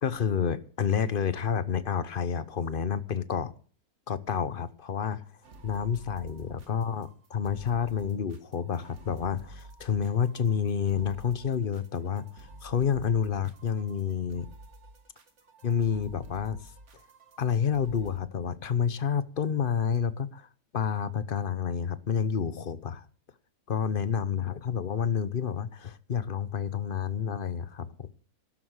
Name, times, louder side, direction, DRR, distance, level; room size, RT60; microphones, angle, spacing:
voice 1, 0.0-3.5 4.1-5.2 5.6-14.5 15.6-16.6 17.4-20.5 20.7-23.0 23.7-28.1, left 7 dB, 40° left, 0.9 m, -29 dB
sound 1, 5.4-18.2, right 2 dB, 50° right, 1.9 m, -51 dB
12.0 x 11.5 x 6.5 m
omnidirectional pair, 1.6 m